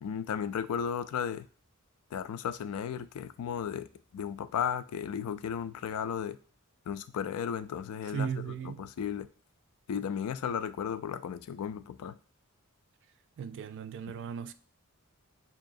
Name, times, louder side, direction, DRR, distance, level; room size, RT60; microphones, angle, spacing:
voice 1, 0.0-1.5 2.1-3.9 4.1-6.4 6.9-8.3 8.8-9.3 9.9-12.2, left 8 dB, 80° left, 0.3 m, -34 dB
voice 2, 8.1-8.9 13.4-14.5, right 7 dB, 55° right, 0.3 m, -36 dB
4.6 x 2.9 x 2.5 m
head